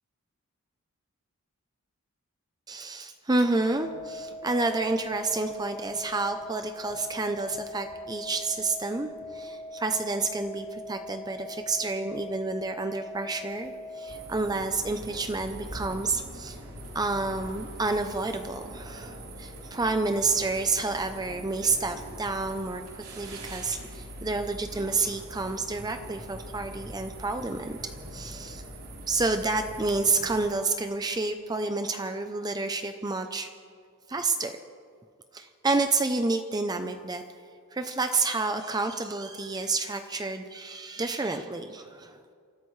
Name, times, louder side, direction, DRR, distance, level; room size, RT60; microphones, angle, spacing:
voice 1, 2.7-16.6 16.9-22.8 23.2-27.8 28.1-28.6 29.1-33.5 34.1-34.5 35.3-37.2 37.7-42.2, right 3 dB, 20° right, 7 dB, 0.6 m, -29 dB
sound 1, 3.7-14.2, left 1 dB, 90° left, 1.7 m, -41 dB
sound 2, 14.1-30.5, right 1 dB, 90° right, 3.9 m, -42 dB
28.5 x 14.0 x 3.2 m, 2.2 s
head